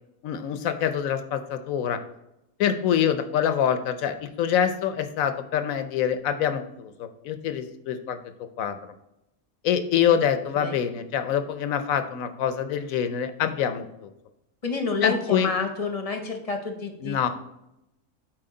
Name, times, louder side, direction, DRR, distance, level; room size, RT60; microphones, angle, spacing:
voice 1, 0.2-2.0 2.6-8.2 8.6-8.8 9.6-14.1 15.0-15.5 17.0-17.3, left 8 dB, 80° left, 9 dB, 1.1 m, -25 dB
voice 2, 14.6-17.2, left 4 dB, 30° left, 4 dB, 0.8 m, -29 dB
7.8 x 4.7 x 3.8 m, 0.87 s
omnidirectional pair, 1.4 m